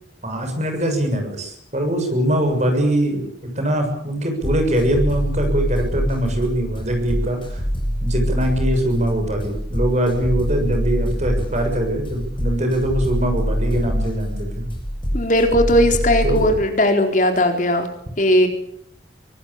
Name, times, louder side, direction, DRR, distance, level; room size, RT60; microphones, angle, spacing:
voice 1, 0.2-7.6 8.0-14.7 16.2-16.4, right 1 dB, 40° right, 5 dB, 7.0 m, -22 dB
sound 1, 4.4-16.6, equal, 30° left, 6.8 m, -25 dB
voice 2, 15.1-17.9 18.2-18.5, equal, 45° left, 4 dB, 4.0 m, -17 dB
24.0 x 19.5 x 8.8 m, 0.71 s
head